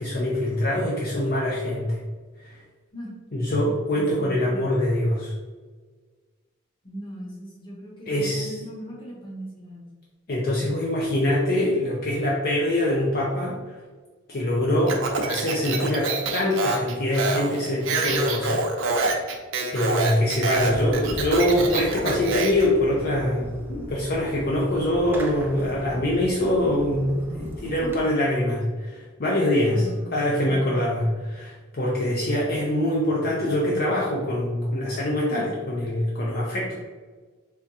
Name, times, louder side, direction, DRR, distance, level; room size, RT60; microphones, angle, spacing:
voice 1, 0.0-2.0 2.4-2.6 3.3-5.3 8.1-8.5 10.3-13.6 14.3-18.6 19.7-36.7, left 1 dB, 45° left, -4 dB, 0.5 m, -24 dB
voice 2, 4.0-4.6 6.8-9.9 29.6-30.1, equal, 25° left, -5 dB, 1.0 m, -39 dB
Speech, 14.9-22.7, right 3 dB, 70° right, 0.6 m, -26 dB
Fireworks, 20.6-28.0, equal, 10° right, 0.3 m, -38 dB
3.5 x 3.4 x 2.7 m, 1.4 s
head